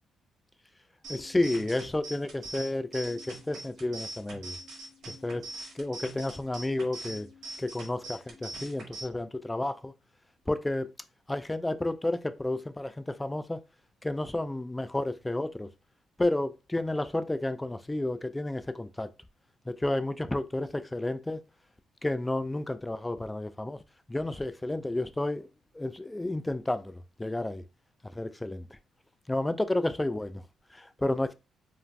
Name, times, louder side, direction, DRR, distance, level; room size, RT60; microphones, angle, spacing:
sound 1, 1.0-9.0, right 2 dB, 60° right, 1.1 m, -43 dB
voice 1, 1.1-4.6 5.0-5.5 5.7-7.3 7.6-9.9 10.5-10.9 11.3-13.6 14.0-15.7 16.2-19.1 19.7-21.4 22.0-23.8 24.1-25.5 25.7-27.6 28.1-28.7 29.3-30.4 30.7-31.3, left 1 dB, 10° left, 0.3 m, -31 dB
2.4 x 2.4 x 3.2 m
cardioid pair, 90°, 0 cm